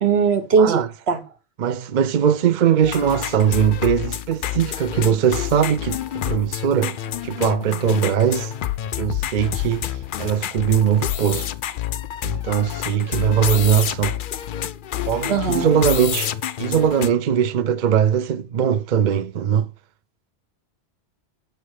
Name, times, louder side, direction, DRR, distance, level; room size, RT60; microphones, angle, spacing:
voice 1, 0.0-0.8 1.1-1.2 15.3-15.7, right 5 dB, 70° right, 1.4 m, -18 dB
voice 2, 0.6-0.9 1.6-8.5 9.0-11.5 12.2-14.2 15.1-19.7, right 8 dB, 55° right, 0.6 m, -20 dB
sound 1, 2.8-17.1, left 11 dB, 60° left, 0.6 m, -28 dB
9.1 x 3.1 x 6.4 m
omnidirectional pair, 1.1 m